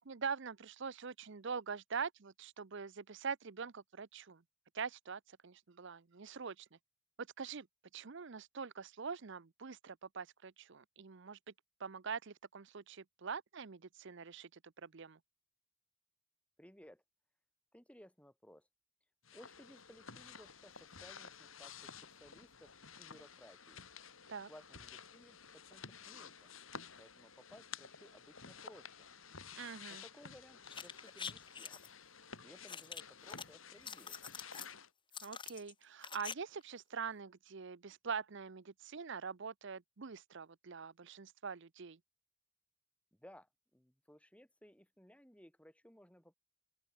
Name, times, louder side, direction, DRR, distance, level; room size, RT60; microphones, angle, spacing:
voice 1, 0.0-4.4 4.7-6.7 7.4-7.7 7.9-11.4 11.8-15.2 24.3-24.5 29.6-30.0 35.2-42.0, right 6 dB, 60° right, 0.7 m, -44 dB
voice 2, 16.6-17.0 17.7-18.7 19.3-21.9 22.2-22.7 23.0-23.8 24.5-26.5 27.0-29.1 29.9-31.8 32.4-34.2 43.1-46.3, equal, 5° left, 6.2 m, -60 dB
sound 1, 19.2-34.9, left 6 dB, 75° left, 7.8 m, -53 dB
sound 2, 30.7-31.9 32.7-33.4 33.8-34.7 35.1-36.3 36.6-36.7, left 6 dB, 25° left, 2.3 m, -46 dB
open air
head